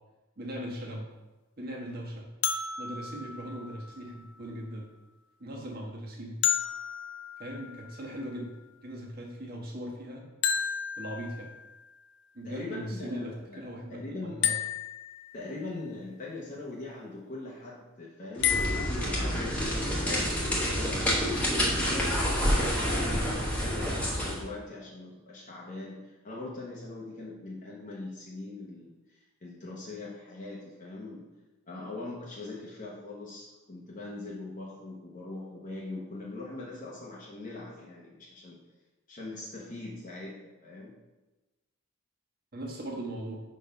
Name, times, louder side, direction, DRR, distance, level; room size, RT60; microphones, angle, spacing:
voice 1, 0.4-1.1 1.6-2.3 2.8-4.9 5.4-6.4 7.4-8.5 8.8-10.3 11.0-11.5 12.3-14.5 42.5-43.4, equal, 45° right, -1 dB, 1.3 m, -39 dB
sound 1, 2.4-4.4 6.4-8.2 10.4-11.8 14.4-15.7 18.4-18.9, left 8 dB, 55° left, 0.4 m, -32 dB
voice 2, 12.4-13.6 13.9-14.4 15.3-21.2 21.5-31.3 31.7-38.6 39.1-40.9, left 2 dB, 40° left, -4 dB, 0.9 m, -41 dB
sound 2, 18.4-24.4, equal, 5° left, 1.2 m, -28 dB
5.2 x 4.1 x 5.3 m, 1.1 s
head